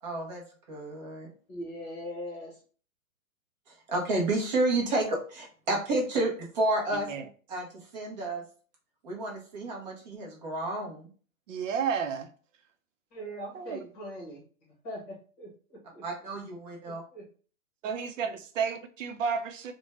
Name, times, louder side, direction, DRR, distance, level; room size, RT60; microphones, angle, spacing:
voice 1, 0.0-1.3 3.7-7.1 7.5-8.4 9.0-11.1 16.0-17.0, right 2 dB, 30° right, -1 dB, 0.8 m, -31 dB
voice 2, 1.5-2.6 13.1-14.4 14.8-16.0 17.1-17.2, equal, 20° left, -4 dB, 0.9 m, -40 dB
voice 3, 11.5-12.3 13.5-13.8 17.8-19.7, right 6 dB, 65° right, 7 dB, 0.6 m, -31 dB
2.5 x 2.2 x 3.1 m, 0.41 s
hypercardioid pair, 165°, 41 cm